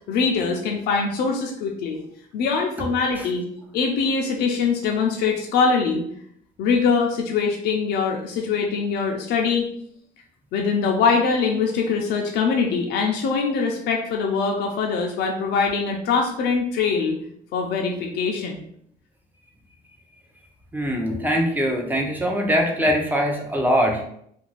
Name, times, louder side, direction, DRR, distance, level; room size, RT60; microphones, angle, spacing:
voice 1, 0.1-2.0 2.3-3.5 3.7-6.0 6.6-9.7 10.5-17.2 17.5-18.6, left 5 dB, 75° left, 1 dB, 0.5 m, -23 dB
voice 2, 20.7-24.0, equal, 10° right, 1 dB, 0.5 m, -22 dB
2.5 x 2.2 x 3.0 m, 0.68 s
cardioid pair, 110°, 17 cm